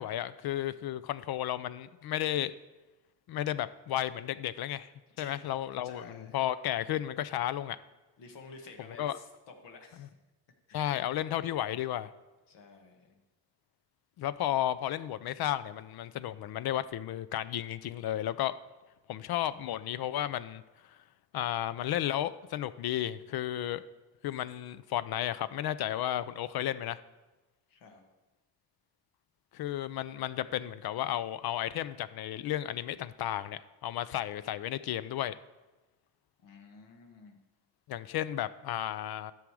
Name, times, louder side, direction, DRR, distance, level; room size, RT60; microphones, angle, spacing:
voice 1, 0.0-2.5 3.3-4.9 5.2-7.8 9.0-9.2 10.7-12.1 14.2-18.5 19.1-20.6 21.3-23.8 24.2-27.0 29.5-35.4 37.9-39.3, left 12 dB, 60° left, 15 dB, 0.5 m, -33 dB
voice 2, 5.2-5.5 5.8-6.3 8.2-10.1 10.7-10.9 12.5-13.2 27.7-28.0 36.4-37.4, left 4 dB, 75° left, 3 dB, 1.5 m, -51 dB
10.5 x 6.2 x 4.7 m, 1.1 s
cardioid pair, 105°, 42 cm